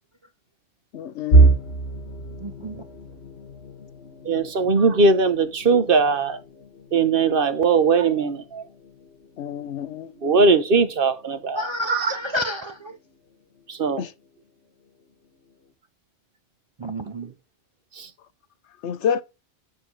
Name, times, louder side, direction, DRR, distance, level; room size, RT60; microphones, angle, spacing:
voice 1, 0.9-1.5 9.4-10.1 14.0-14.1 18.8-19.2, left 8 dB, 85° left, 1.0 m, -28 dB
sound 1, 1.3-13.1 13.6-13.8 14.2-14.4 15.2-15.7, right 3 dB, 70° left, 1.4 m, -26 dB
voice 2, 2.4-2.8 11.5-13.0 16.8-17.3, left 1 dB, 40° right, 0.4 m, -30 dB
voice 3, 4.3-6.4 6.9-8.6 10.2-12.2 13.7-14.0 18.0-18.1, right 4 dB, 55° right, 1.0 m, -20 dB
5.9 x 4.7 x 6.1 m
omnidirectional pair, 1.1 m